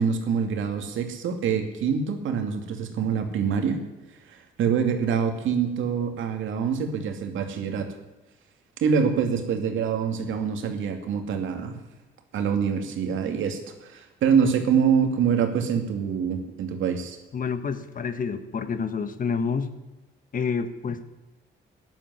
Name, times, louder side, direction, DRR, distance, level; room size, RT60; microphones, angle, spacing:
voice 1, 0.0-3.8 4.3-7.9 8.8-11.7 12.3-17.2, right 6 dB, 80° right, 5 dB, 2.5 m, -25 dB
voice 2, 17.3-19.7 20.3-21.0, left 5 dB, 45° left, 11 dB, 1.5 m, -28 dB
13.5 x 11.0 x 9.9 m, 1.1 s
cardioid pair, 90°, 20 cm